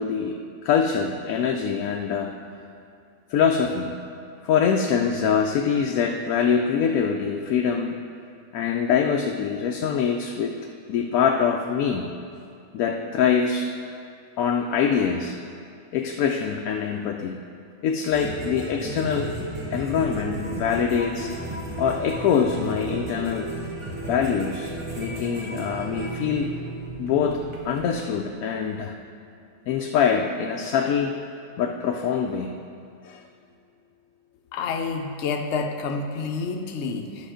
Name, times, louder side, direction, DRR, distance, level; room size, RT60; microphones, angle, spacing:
voice 1, 0.0-2.3 3.3-3.9 4.4-8.0 8.5-10.6 10.9-12.1 12.7-13.7 14.4-15.4 15.9-17.4 17.8-19.4 19.7-21.3 21.8-23.5 24.1-26.5 27.0-28.9 29.7-31.2 31.6-32.5 33.0-33.2, left 7 dB, 85° left, 2 dB, 1.1 m, -24 dB
sound 1, 18.1-28.1, right 2 dB, 20° right, 1.1 m, -34 dB
voice 2, 34.5-37.3, left 4 dB, 60° left, 4 dB, 0.9 m, -29 dB
10.0 x 6.4 x 5.0 m, 2.5 s
omnidirectional pair, 1.5 m